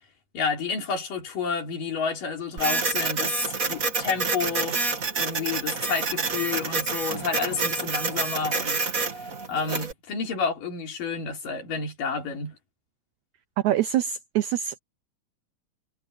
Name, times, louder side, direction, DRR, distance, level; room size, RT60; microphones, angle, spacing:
voice 1, 0.3-4.8 5.2-8.8 9.2-12.6, left 5 dB, 65° left, 5.0 m, -30 dB
Printer, 2.6-9.9, right 4 dB, 30° right, 1.7 m, -28 dB
voice 2, 13.6-14.8, right 11 dB, 85° right, 1.6 m, -25 dB
omnidirectional pair, 4.1 m